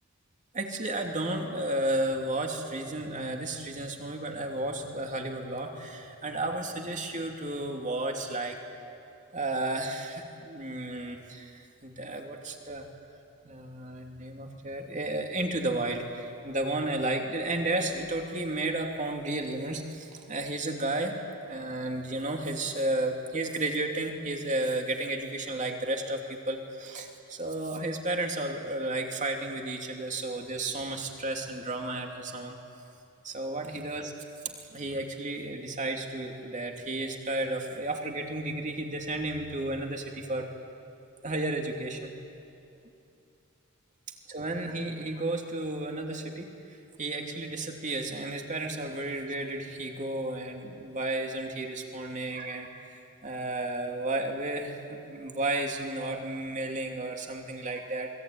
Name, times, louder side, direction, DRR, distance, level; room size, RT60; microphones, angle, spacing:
voice 1, 0.5-8.6 9.3-12.9 13.4-21.1 21.4-32.6 33.2-34.1 34.4-40.5 41.2-42.1 44.3-46.5 47.0-58.1, right 2 dB, 35° right, 2 dB, 2.8 m, -33 dB
28.5 x 21.5 x 9.5 m, 2.7 s
head